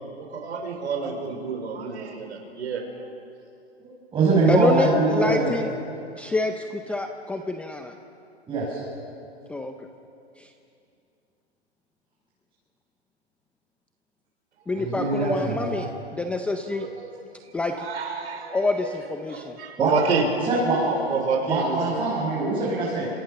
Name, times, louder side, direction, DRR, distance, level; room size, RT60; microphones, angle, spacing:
voice 1, 0.3-3.1 14.8-14.9 15.1-16.0 16.7-17.2 17.8-19.0 19.3-20.3 21.1-22.1, right 5 dB, 75° right, 2 dB, 5.2 m, -30 dB
voice 2, 3.8-5.5 8.5-8.8 14.7-15.7 19.8-19.9 20.5-21.0 21.5-23.1, right 3 dB, 15° right, -6 dB, 6.5 m, -23 dB
voice 3, 4.5-5.7 6.2-7.9 9.5-9.7 10.4-10.5 14.7-16.9 17.5-17.9 18.5-19.6, left 2 dB, 5° left, 5 dB, 0.6 m, -27 dB
28.5 x 26.5 x 6.9 m, 2.6 s
hypercardioid pair, 150°, 34 cm